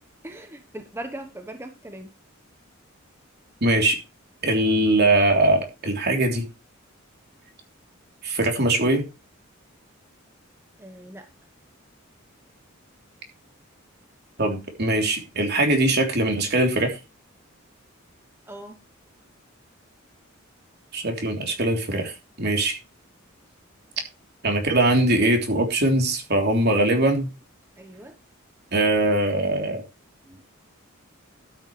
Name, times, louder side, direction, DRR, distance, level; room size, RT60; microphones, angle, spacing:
voice 1, 0.2-2.1 10.8-11.3 18.5-18.8 27.8-28.1 30.3-30.4, right 1 dB, 10° right, 6 dB, 1.0 m, -39 dB
voice 2, 3.6-4.0 4.4-6.5 8.2-9.1 14.4-17.0 20.9-22.7 24.4-27.3 28.7-29.8, right 1 dB, 55° right, 3 dB, 3.3 m, -21 dB
12.5 x 8.9 x 3.2 m, 0.28 s
head